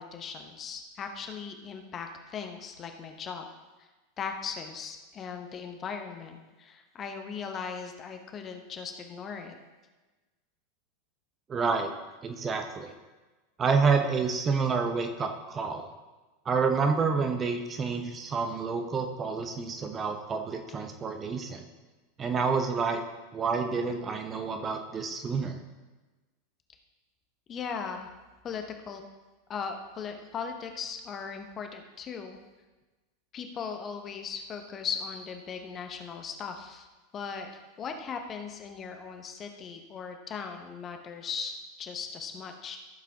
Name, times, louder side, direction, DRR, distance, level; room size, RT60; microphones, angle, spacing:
voice 1, 0.0-3.5 4.2-9.5 27.5-28.1 28.4-29.0 29.5-32.4 33.3-36.9 37.1-37.5 37.8-42.8, left 6 dB, 30° left, 5 dB, 1.0 m, -38 dB
voice 2, 11.5-11.9 12.2-12.9 13.6-15.9 16.4-21.6 22.2-23.0 23.3-25.6, right 5 dB, 25° right, 5 dB, 0.9 m, -28 dB
15.0 x 7.3 x 2.9 m, 1.2 s
figure-of-eight pair, 85°, 0 cm